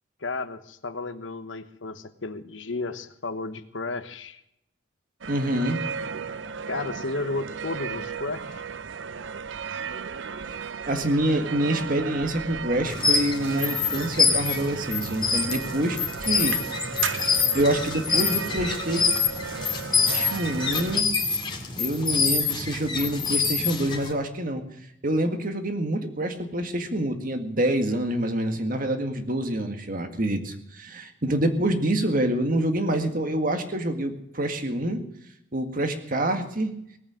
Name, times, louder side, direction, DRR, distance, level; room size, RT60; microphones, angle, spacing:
voice 1, 0.2-4.4 6.7-8.6, left 3 dB, 85° left, 11 dB, 1.2 m, -33 dB
sound 1, 5.2-21.0, right 6 dB, 80° right, 0.6 m, -35 dB
voice 2, 5.3-5.8 10.9-16.6 17.5-19.0 20.1-21.1 21.8-24.6 25.0-35.0 35.5-36.7, right 1 dB, 45° right, 6 dB, 1.9 m, -26 dB
sound 2, 12.8-24.1, left 5 dB, 25° left, 2.5 m, -26 dB
19.0 x 8.8 x 7.6 m, 0.77 s
head